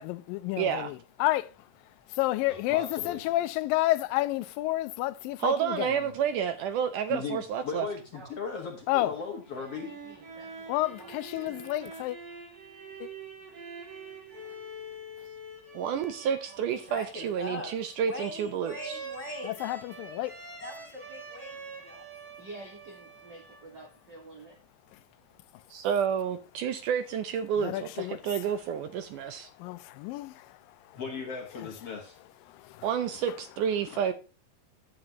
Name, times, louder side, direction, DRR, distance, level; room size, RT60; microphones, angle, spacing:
voice 1, 0.0-1.5 2.1-5.9 8.9-9.1 10.7-12.2 13.0-13.1 19.5-20.3 27.6-28.2 29.6-30.6 32.5-32.9, left 17 dB, 85° left, 2.3 m, -30 dB
voice 2, 0.6-0.9 5.4-7.9 15.7-18.7 25.7-29.5 32.8-34.1, right 8 dB, 75° right, 2.2 m, -30 dB
voice 3, 2.5-3.2 7.1-9.9 30.9-32.2, left 5 dB, 50° left, 2.2 m, -37 dB
sound 1, 9.4-24.0, right 3 dB, 30° right, 2.3 m, -46 dB
voice 4, 9.6-10.5 10.8-11.7 22.4-24.6, right 3 dB, 55° right, 1.2 m, -49 dB
voice 5, 16.9-17.7 18.0-19.6 20.6-22.1, left 1 dB, 5° left, 6.5 m, -40 dB
11.5 x 8.7 x 2.9 m
omnidirectional pair, 4.0 m